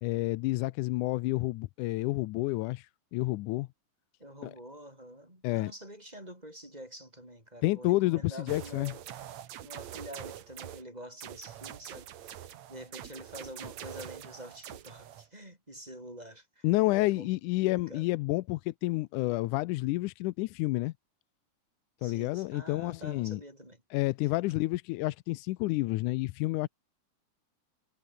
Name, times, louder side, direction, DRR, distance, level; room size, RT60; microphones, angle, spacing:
voice 1, 0.0-3.7 4.4-4.5 5.4-5.7 7.6-8.9 16.6-20.9 22.0-23.4 23.9-26.7, left 20 dB, 85° left, 2.1 m, -29 dB
voice 2, 4.2-9.0 9.6-17.3 17.7-18.0 22.0-23.8 24.2-24.4, right 1 dB, 10° right, 7.8 m, -47 dB
sound 1, 8.5-10.8 11.2-15.3, right 11 dB, 65° right, 2.6 m, -45 dB
omnidirectional pair, 3.5 m